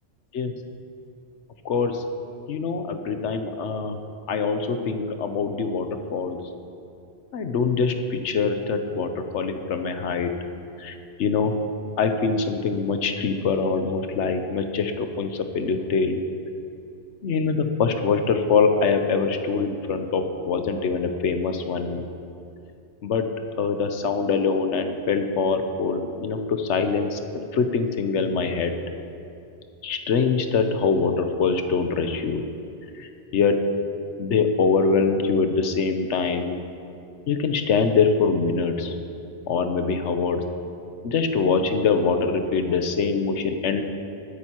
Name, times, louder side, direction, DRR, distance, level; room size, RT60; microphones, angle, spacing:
voice 1, 1.6-2.0 2.5-4.0 4.3-6.4 7.3-7.9 8.2-10.3 10.8-11.5 12.0-16.2 17.2-22.0 23.0-23.3 23.6-27.2 27.5-28.7 29.8-32.4 33.0-33.1 33.3-33.6 34.2-36.6 37.3-38.9 39.5-40.4 41.0-43.8, left 5 dB, 75° left, 7 dB, 1.0 m, -23 dB
20.5 x 9.0 x 2.9 m, 2.6 s
omnidirectional pair, 1.2 m